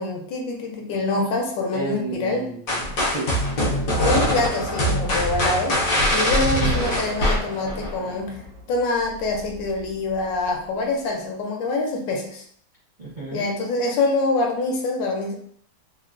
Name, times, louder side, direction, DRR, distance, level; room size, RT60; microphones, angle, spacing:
voice 1, 0.0-2.5 4.0-5.8 6.1-8.4 8.7-12.4 13.3-15.4, left 2 dB, 75° left, 1 dB, 1.3 m, -25 dB
voice 2, 1.7-3.3 6.6-6.9 13.0-13.5, right 2 dB, 50° right, -9 dB, 0.5 m, -32 dB
sound 1, 2.7-7.9, left 1 dB, 60° left, 1.0 m, -23 dB
sound 2, 5.1-10.3, right 1 dB, 75° right, 1.1 m, -32 dB
3.4 x 2.1 x 2.4 m, 0.62 s
omnidirectional pair, 2.1 m